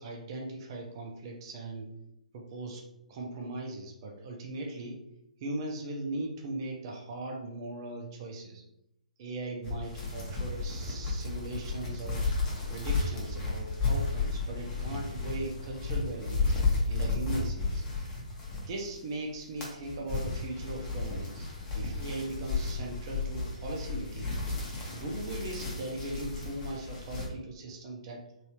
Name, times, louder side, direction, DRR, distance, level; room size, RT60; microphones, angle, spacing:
voice 1, 0.0-1.9 2.3-5.0 5.4-8.6 9.2-12.3 12.7-16.6 16.9-17.8 18.5-21.5 21.7-24.3 24.9-28.2, right 2 dB, 35° right, 0 dB, 0.6 m, -39 dB
sound 1, 9.6-19.0 19.4-27.3, left 3 dB, 20° left, 0.9 m, -33 dB
3.3 x 2.7 x 2.9 m, 0.83 s
figure-of-eight pair, 135°, 4 cm